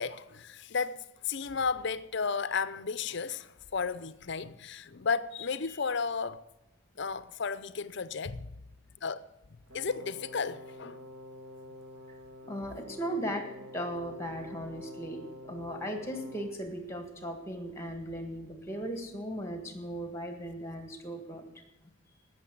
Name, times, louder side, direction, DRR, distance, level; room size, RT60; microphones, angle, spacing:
voice 1, 0.0-6.4 7.0-8.5 9.0-9.2 9.7-11.0, left 5 dB, 55° left, 0.6 m, -33 dB
Brass instrument, 9.7-16.6, left 1 dB, 80° right, 1.9 m, -47 dB
voice 2, 12.4-13.5 13.7-15.2 15.5-21.4, equal, 10° left, 1.7 m, -37 dB
15.5 x 6.5 x 7.7 m
head